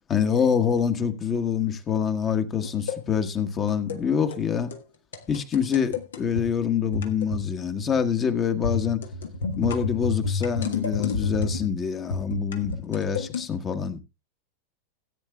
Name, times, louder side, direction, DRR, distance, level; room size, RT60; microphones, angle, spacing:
voice 1, 0.1-4.7 5.3-9.0 9.6-14.0, left 7 dB, 25° left, 1.3 m, -25 dB
sound 1, 2.6-3.0 3.7-4.0 4.3-4.5 4.7-4.8 5.1-6.5 6.9-7.5 7.8-8.1 8.6-11.7 12.1-13.4, left 4 dB, 65° left, 1.4 m, -30 dB
17.0 x 9.2 x 2.3 m
figure-of-eight pair, 90°, 0 cm